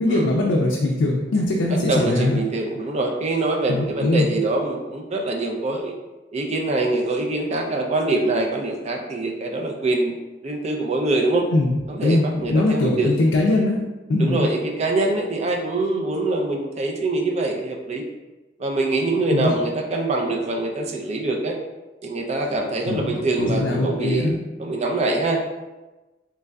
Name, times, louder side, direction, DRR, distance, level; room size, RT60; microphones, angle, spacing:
voice 1, 0.0-2.4 3.7-4.3 11.5-13.8 14.1-14.5 19.3-19.5 22.9-24.4, left 2 dB, 75° left, -2 dB, 0.4 m, -21 dB
voice 2, 1.7-5.9 6.3-10.1 10.4-11.5 11.9-13.1 14.2-18.0 18.6-21.6 22.0-24.3 24.6-25.4, right 2 dB, 35° right, 1 dB, 0.4 m, -24 dB
3.6 x 3.2 x 2.2 m, 1.1 s
head